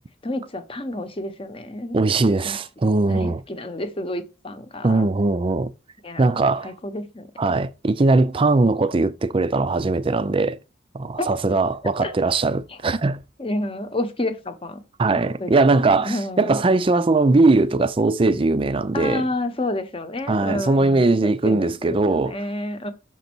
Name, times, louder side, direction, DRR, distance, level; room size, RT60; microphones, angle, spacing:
voice 1, 0.2-2.0 2.4-2.5 3.1-5.1 6.0-7.5 11.2-11.4 11.8-12.1 12.7-12.8 13.4-14.8 15.1-16.6 18.9-22.9, left 1 dB, 30° left, 0.9 m, -30 dB
voice 2, 1.9-3.4 4.8-5.7 6.2-6.7 7.4-10.6 10.9-13.2 15.0-19.3 20.3-22.4, right 3 dB, 30° right, 0.4 m, -20 dB
6.2 x 4.0 x 6.0 m
head